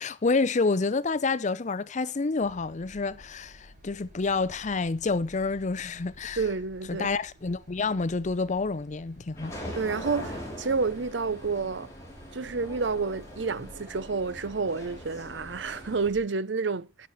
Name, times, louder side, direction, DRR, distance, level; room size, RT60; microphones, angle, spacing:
voice 1, 0.0-6.4 6.9-9.5, left 3 dB, 40° left, 0.6 m, -28 dB
sound 1, 2.4-16.2, equal, 45° right, 5.1 m, -53 dB
voice 2, 6.4-7.1 9.8-11.9 12.3-17.1, right 4 dB, 80° right, 0.7 m, -29 dB
sound 2, 9.4-16.1, equal, 15° left, 5.5 m, -42 dB
12.0 x 9.2 x 4.1 m
head